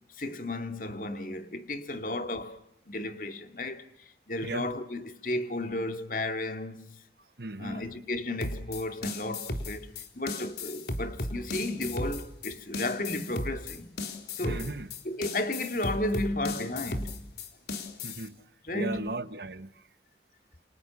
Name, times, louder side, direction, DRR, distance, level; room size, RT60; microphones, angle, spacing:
voice 1, 0.2-2.6 2.9-7.0 7.6-13.9 14.3-14.7 15.1-17.3 18.6-19.1, left 1 dB, 50° left, 2.7 m, -34 dB
voice 2, 7.2-7.9 14.4-14.9 18.0-18.4 18.7-19.9, right 2 dB, 65° right, 1.3 m, -37 dB
sound 1, 8.4-18.3, left 2 dB, 65° left, 3.8 m, -35 dB
30.0 x 27.0 x 7.3 m
head